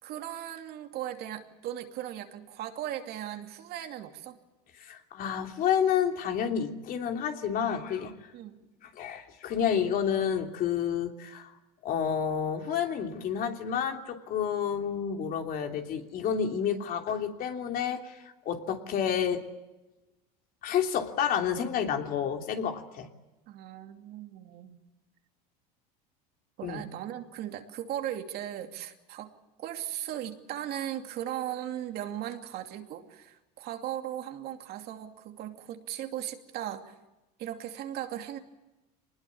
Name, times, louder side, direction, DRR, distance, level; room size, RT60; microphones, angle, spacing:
voice 1, 0.0-4.4 8.3-8.6 23.5-24.8 26.6-29.3 29.6-36.9 37.4-38.4, right 11 dB, 55° right, 5 dB, 2.7 m, -37 dB
voice 2, 4.8-8.2 8.8-11.5 11.8-19.4 20.6-23.1 26.6-26.8, left 8 dB, 45° left, 4 dB, 3.2 m, -30 dB
24.5 x 20.5 x 8.6 m, 1.0 s
supercardioid pair, 120°, 20 cm